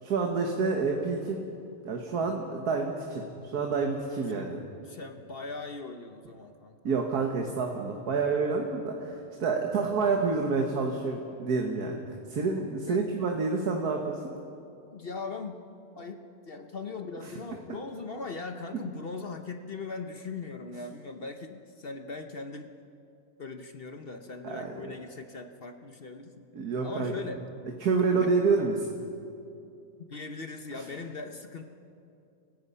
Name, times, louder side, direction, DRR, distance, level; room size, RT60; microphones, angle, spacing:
voice 1, 0.0-1.4 1.8-4.6 6.8-12.0 12.3-14.3 24.4-24.9 26.5-27.2 27.8-28.7, right 4 dB, 80° right, 2 dB, 1.9 m, -28 dB
voice 2, 4.8-7.0 12.8-13.0 14.9-22.7 23.4-26.5 26.8-27.4 28.1-28.4 30.1-31.7, left 4 dB, 45° left, 6 dB, 1.0 m, -40 dB
30.0 x 16.5 x 5.6 m, 2.6 s
omnidirectional pair, 1.6 m